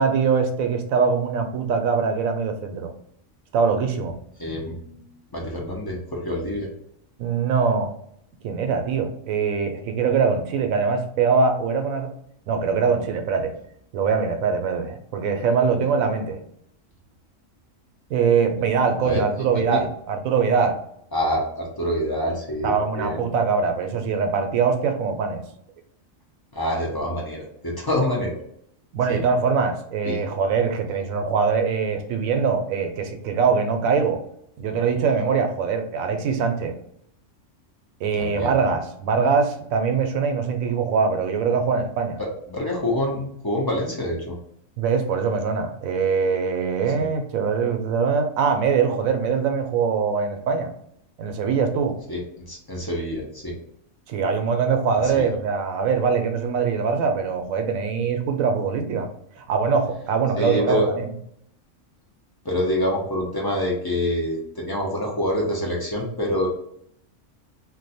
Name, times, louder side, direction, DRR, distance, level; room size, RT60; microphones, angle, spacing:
voice 1, 0.0-2.9 3.5-4.1 7.2-7.9 8.4-12.1 12.5-13.5 13.9-16.4 18.1-20.8 22.6-25.4 28.9-34.2 34.6-36.7 38.0-42.2 44.8-50.7 51.2-52.0 54.1-59.1 59.3-61.2, right 5 dB, 85° right, 5 dB, 1.0 m, -22 dB
voice 2, 4.4-6.7 19.0-19.2 19.5-19.8 21.1-23.2 26.5-28.4 29.1-29.2 30.0-30.2 38.2-38.5 42.5-44.3 52.1-52.2 52.5-53.6 55.1-55.3 60.4-60.9 62.4-66.5, left 1 dB, 35° left, -2 dB, 0.3 m, -26 dB
2.6 x 2.1 x 4.0 m, 0.71 s
omnidirectional pair, 1.4 m